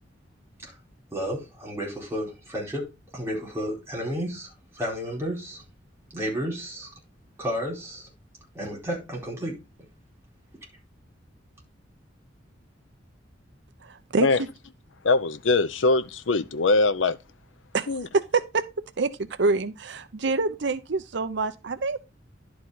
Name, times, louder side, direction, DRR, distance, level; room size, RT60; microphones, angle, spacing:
voice 1, 1.1-2.8 3.1-5.6 6.1-6.9 7.4-8.1 8.5-9.5, equal, 15° right, 4.3 m, -32 dB
voice 2, 13.8-14.3 17.7-17.9 18.1-18.6 19.0-19.1 19.4-22.0, right 3 dB, 65° right, 0.7 m, -26 dB
voice 3, 15.0-17.2 17.9-18.1, left 3 dB, 80° left, 0.7 m, -22 dB
11.5 x 4.8 x 4.0 m
head